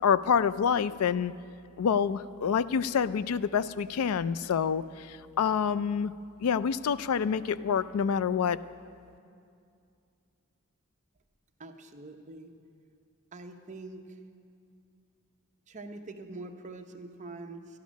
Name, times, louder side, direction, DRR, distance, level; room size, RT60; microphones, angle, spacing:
voice 1, 0.0-1.3 1.8-6.1 6.4-8.6, left 7 dB, 85° left, 16 dB, 0.4 m, -27 dB
voice 2, 11.6-12.5 13.3-14.2 15.7-17.8, right 2 dB, 35° right, 4 dB, 0.8 m, -44 dB
12.5 x 11.5 x 6.3 m, 2.4 s
head